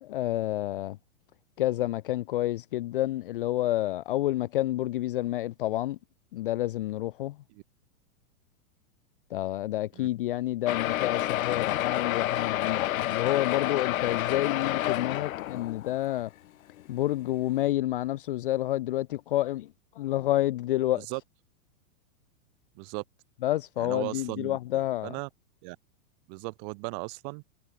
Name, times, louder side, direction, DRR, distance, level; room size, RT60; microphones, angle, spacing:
voice 1, 0.0-1.0 1.6-6.0 6.3-7.4 9.3-16.3 16.9-21.1 23.4-25.1, left 15 dB, 40° left, 0.8 m, -29 dB
sound 1, 10.7-16.1 16.8-16.9 17.1-17.2 17.6-17.7, left 14 dB, 70° left, 0.9 m, -29 dB
voice 2, 23.8-24.6 25.0-25.3 25.6-25.8 26.3-27.4, right 39 dB, 30° right, 5.2 m, -36 dB
supercardioid pair, 180°, 43 cm